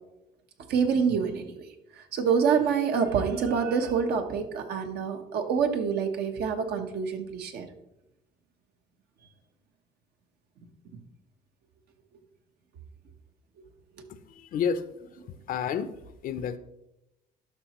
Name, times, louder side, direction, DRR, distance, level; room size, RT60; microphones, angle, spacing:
voice 1, 0.7-1.7 2.0-7.7, right 6 dB, 70° right, 5 dB, 1.1 m, -26 dB
voice 2, 14.1-15.9 16.2-16.6, left 7 dB, 55° left, 13 dB, 0.6 m, -31 dB
11.5 x 5.8 x 3.0 m, 0.88 s
cardioid pair, 110°, 17 cm